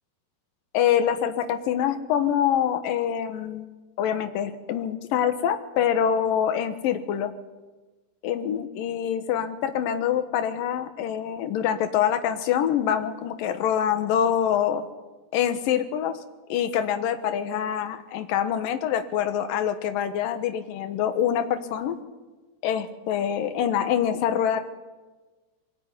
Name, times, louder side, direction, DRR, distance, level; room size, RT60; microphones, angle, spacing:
voice 1, 0.7-3.7 4.0-7.3 8.2-14.8 15.3-16.2 16.5-22.0 22.6-24.6, left 9 dB, 65° left, 9 dB, 2.6 m, -25 dB
22.5 x 15.0 x 9.7 m, 1.3 s
omnidirectional pair, 5.0 m